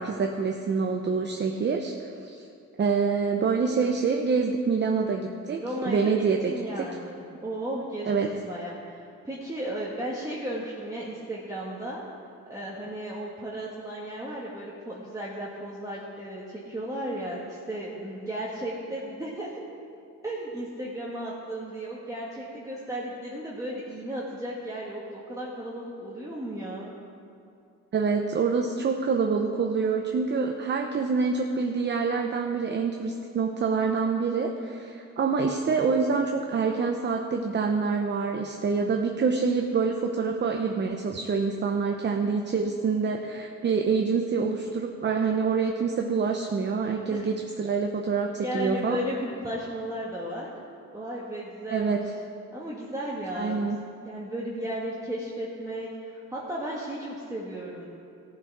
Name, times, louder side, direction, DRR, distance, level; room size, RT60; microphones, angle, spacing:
voice 1, 0.0-1.9 2.2-2.5 2.8-6.9 8.1-8.3 27.9-49.0 51.7-52.1 53.3-53.8, right 5 dB, 35° right, 3 dB, 0.8 m, -26 dB
voice 2, 5.5-6.2 6.4-12.0 12.5-19.6 20.2-26.9 47.1-47.3 48.4-50.5 50.9-52.0 52.5-53.6 54.0-57.9, right 1 dB, 10° right, -5 dB, 1.5 m, -35 dB
15.0 x 7.2 x 4.7 m, 2.5 s
cardioid pair, 90°, 30 cm